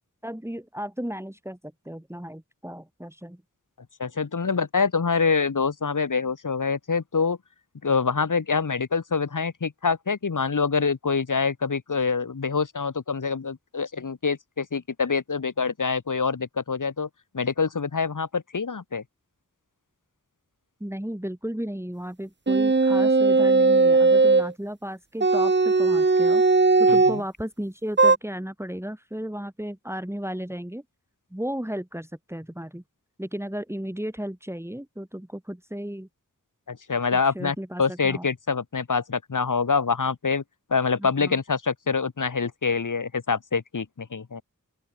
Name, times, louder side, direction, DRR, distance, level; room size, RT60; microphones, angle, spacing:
voice 1, 0.2-3.4 20.8-26.4 26.8-30.8 31.3-32.8 33.2-36.1 37.3-38.3 41.0-41.4, equal, 10° right, 4.0 m, -34 dB
voice 2, 4.0-7.4 7.8-17.1 17.3-19.0 26.9-27.2 36.7-40.4 40.7-44.4, left 5 dB, 70° left, 1.8 m, -25 dB
sound 1, 22.5-24.5 25.2-27.2 28.0-28.2, right 3 dB, 35° right, 1.0 m, -18 dB
open air
wide cardioid pair, 70°, 32 cm